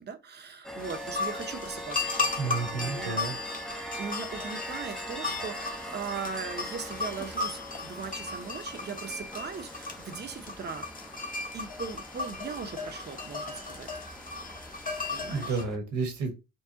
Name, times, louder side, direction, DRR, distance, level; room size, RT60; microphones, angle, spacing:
voice 1, 0.0-3.2 4.0-10.9 11.5-13.9 15.1-15.6, right 5 dB, 35° right, 0.8 m, -39 dB
sound 1, 0.6-15.8, equal, ahead, 0.6 m, -41 dB
sound 2, 0.8-15.6, left 3 dB, 30° left, 1.0 m, -36 dB
voice 2, 2.4-3.4 15.2-16.3, right 4 dB, 70° right, 1.6 m, -31 dB
4.6 x 2.3 x 2.8 m
cardioid pair, 90°, 30 cm